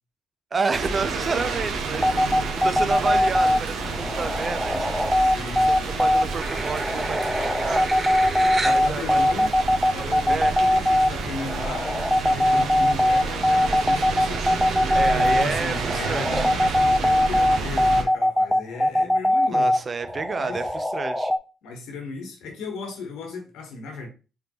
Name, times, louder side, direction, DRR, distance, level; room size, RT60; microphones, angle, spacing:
voice 1, 0.5-7.9 8.6-9.4 9.9-10.6 14.9-16.5 19.5-21.3, right 4 dB, 45° right, 0.6 m, -30 dB
sound 1, 0.7-18.0, right 4 dB, 75° right, 0.9 m, -30 dB
sound 2, 1.9-21.4, left 1 dB, 10° left, 0.6 m, -21 dB
voice 2, 2.0-2.4 5.1-5.9 8.4-9.6 9.9-14.6 15.0-19.7 20.4-20.6 21.6-24.1, left 4 dB, 80° left, 1.3 m, -36 dB
sound 3, 6.4-8.9 9.6-9.7 11.1-11.2 11.4-11.8 12.2-12.7 13.1-15.4, right 2 dB, 25° right, 1.2 m, -33 dB
5.0 x 3.3 x 3.0 m
supercardioid pair, 55°, 0 cm